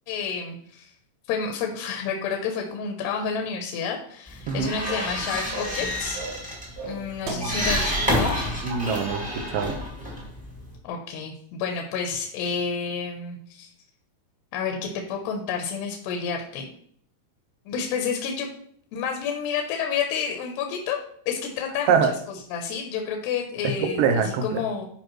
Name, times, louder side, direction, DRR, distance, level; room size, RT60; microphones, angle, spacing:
voice 1, 0.1-0.9 1.3-6.2 6.8-8.4 10.8-13.7 14.5-16.7 17.7-18.5 18.9-21.0 21.3-24.9, left 6 dB, 80° left, 3 dB, 2.9 m, -30 dB
sound 1, 4.3-10.8, equal, 10° right, 0.5 m, -29 dB
sound 2, 4.9-5.2 5.5-5.8 6.1-6.5 6.8-8.0 8.2-8.4 8.7-9.3 9.5-9.7, right 3 dB, 65° right, 1.8 m, -36 dB
voice 2, 8.6-9.7 21.9-22.1 23.8-24.5, right 6 dB, 85° right, 5 dB, 1.9 m, -24 dB
11.5 x 5.1 x 3.1 m, 0.65 s
omnidirectional pair, 4.7 m